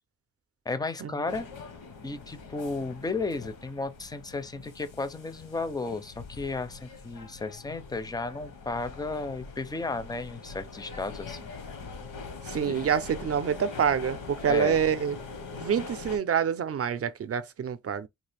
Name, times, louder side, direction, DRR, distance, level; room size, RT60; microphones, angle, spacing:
voice 1, 0.7-1.5 2.0-11.5 12.6-12.8 14.4-14.8, left 3 dB, 10° left, 0.4 m, -34 dB
sound 1, 1.3-16.2, left 4 dB, 80° left, 1.0 m, -43 dB
voice 2, 12.5-15.2 15.6-18.1, right 7 dB, 45° right, 0.5 m, -27 dB
3.8 x 2.4 x 3.3 m
wide cardioid pair, 130°, 32 cm